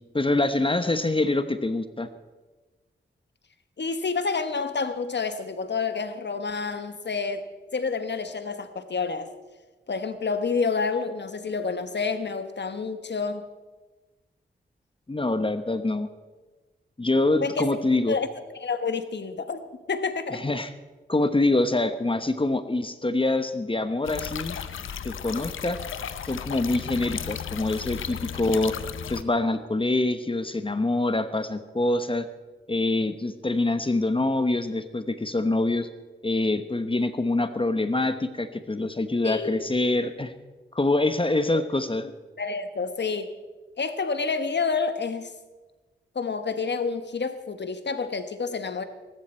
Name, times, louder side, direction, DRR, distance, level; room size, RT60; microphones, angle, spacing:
voice 1, 0.1-2.1 15.1-16.1 17.0-18.2 20.3-20.7 21.1-24.6 25.0-25.8 26.2-28.7 29.1-32.3 32.7-35.9 36.2-40.3 40.7-42.1, left 2 dB, 25° left, 10 dB, 1.0 m, -25 dB
voice 2, 3.8-7.4 7.7-9.3 9.9-13.5 17.4-17.8 18.1-18.3 18.6-19.6 19.9-20.4 39.2-39.6 41.5-41.6 42.4-43.3 43.8-45.3 46.1-48.8, left 4 dB, 60° left, 10 dB, 1.2 m, -29 dB
sound 1, 24.0-29.2, left 8 dB, 85° left, 0.7 m, -34 dB
21.5 x 12.0 x 4.4 m, 1.3 s
cardioid pair, 45°, 20 cm